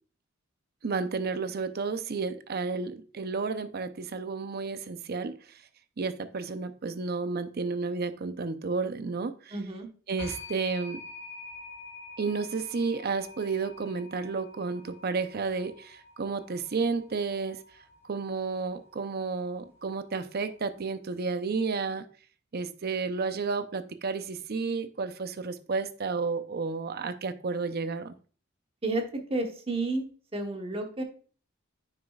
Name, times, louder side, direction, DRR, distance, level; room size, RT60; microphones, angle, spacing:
voice 1, 0.8-5.4 6.0-9.6 10.1-11.0 12.2-17.6 18.1-22.0 22.5-28.1, right 4 dB, 50° right, 0.6 m, -32 dB
voice 2, 9.5-9.9 28.8-30.0 30.3-31.0, right 2 dB, 30° right, 1.1 m, -31 dB
sound 1, 10.2-20.8, left 3 dB, 15° left, 3.6 m, -48 dB
9.2 x 6.4 x 2.3 m
head